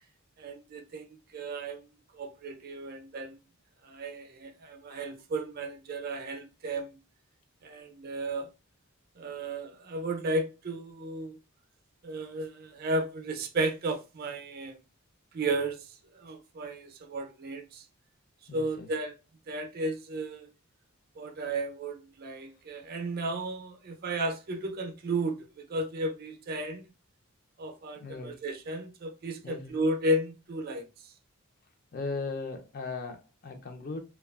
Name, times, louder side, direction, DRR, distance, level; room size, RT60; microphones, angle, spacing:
voice 1, 0.4-1.1 1.3-1.8 2.1-3.4 3.8-7.0 7.6-8.5 9.2-11.4 12.0-14.8 15.3-17.8 18.5-19.1 19.5-20.5 21.2-26.8 27.6-30.9, right 2 dB, 45° right, 0.4 m, -34 dB
voice 2, 18.5-18.9 28.0-28.4 29.4-29.7 31.9-34.0, left 3 dB, 40° left, 0.4 m, -38 dB
2.7 x 2.2 x 2.3 m
head